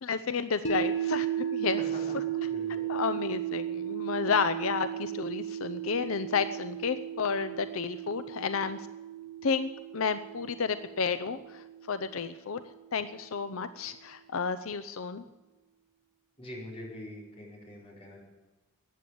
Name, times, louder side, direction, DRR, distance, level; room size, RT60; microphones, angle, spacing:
voice 1, 0.0-1.8 2.4-2.5 2.9-8.9 9.4-12.6 12.9-15.2, left 5 dB, 75° left, 12 dB, 0.6 m, -31 dB
sound 1, 0.6-12.8, right 10 dB, 60° left, 1.3 m, -35 dB
voice 2, 2.4-2.9 16.4-18.2, left 1 dB, 30° left, -3 dB, 5.0 m, -44 dB
14.0 x 9.3 x 8.5 m, 1.2 s
head